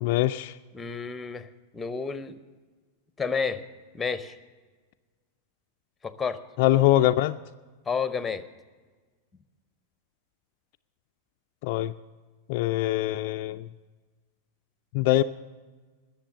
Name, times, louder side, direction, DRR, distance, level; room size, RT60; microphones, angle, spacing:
voice 1, 0.0-0.6 6.6-7.4 11.6-11.9 12.5-13.7 14.9-15.2, left 15 dB, 45° left, 9 dB, 0.3 m, -23 dB
voice 2, 0.7-1.5 1.7-2.4 3.2-3.6 3.9-4.4 6.0-6.4 7.9-8.4, left 5 dB, 10° left, 13 dB, 0.8 m, -30 dB
20.0 x 7.3 x 6.5 m, 1.4 s
figure-of-eight pair, 90°, 0 cm